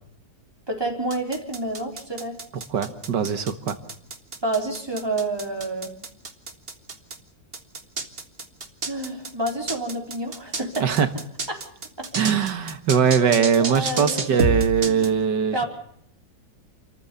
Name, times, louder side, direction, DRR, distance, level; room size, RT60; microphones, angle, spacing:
voice 1, 0.7-2.4 4.4-5.9 8.9-10.9 11.5-11.7 12.0-12.1 13.6-14.3 15.5-15.7, right 2 dB, 15° right, 1 dB, 4.1 m, -28 dB
sound 1, 1.1-7.2 7.5-15.1, right 3 dB, 35° right, 1.8 m, -29 dB
voice 2, 2.7-3.8 10.8-11.1 12.2-15.6, right 7 dB, 75° right, 10 dB, 2.1 m, -21 dB
29.0 x 14.5 x 6.9 m, 0.70 s
omnidirectional pair, 1.9 m